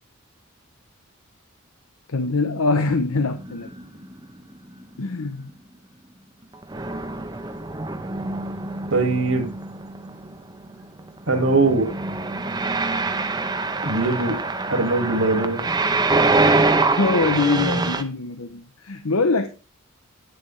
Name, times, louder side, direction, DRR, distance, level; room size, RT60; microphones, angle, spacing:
voice 1, 2.1-3.7 5.0-5.5 16.7-19.5, left 3 dB, 85° left, 8 dB, 0.9 m, -23 dB
sound 1, 3.1-5.0 6.6-18.0, right 3 dB, 20° right, 0.8 m, -25 dB
voice 2, 8.9-9.5 11.3-11.9 13.8-14.4 14.7-15.6, right 3 dB, 65° right, 5 dB, 2.2 m, -21 dB
10.5 x 9.6 x 3.3 m, 0.30 s
head